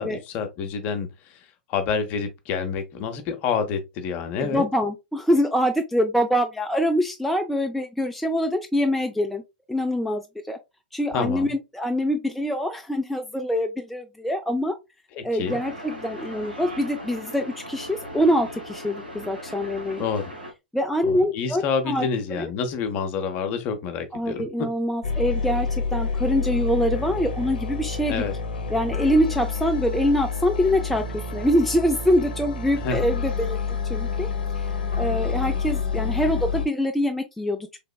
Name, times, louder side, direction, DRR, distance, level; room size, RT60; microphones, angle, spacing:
voice 1, 0.0-1.4 1.7-4.6 11.1-11.5 15.2-15.6 20.0-20.2 21.1-24.7 28.1-28.3 32.8-33.0, left 6 dB, 35° left, 0.7 m, -28 dB
voice 2, 4.4-9.4 9.7-10.2 10.5-10.6 10.9-14.8 15.2-20.0 20.7-22.1 22.4-22.5 24.1-28.2 28.7-31.0 31.3-33.6 33.9-34.3 35.0-37.7, equal, ahead, 0.3 m, -24 dB
sound 1, 15.4-20.5, equal, 90° right, 1.2 m, -38 dB
sound 2, 25.0-36.7, left 5 dB, 70° left, 0.7 m, -28 dB
3.4 x 2.9 x 2.3 m
figure-of-eight pair, 95°, 5 cm